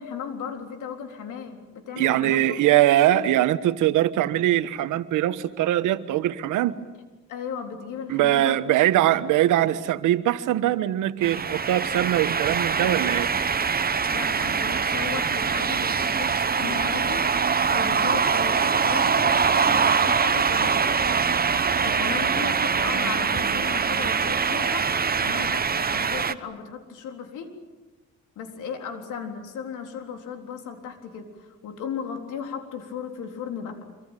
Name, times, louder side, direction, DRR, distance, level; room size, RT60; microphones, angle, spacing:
voice 1, 0.0-2.7 3.1-3.3 7.3-8.7 14.1-17.3 17.7-21.4 21.8-27.5 28.4-33.9, left 7 dB, 85° left, 5 dB, 3.9 m, -36 dB
voice 2, 2.0-6.7 8.1-13.3, right 13 dB, 90° right, 13 dB, 1.3 m, -22 dB
sound 1, 11.2-26.3, right 6 dB, 30° right, 1.2 m, -23 dB
25.5 x 24.5 x 9.1 m, 1.2 s
cardioid pair, 90°, 30 cm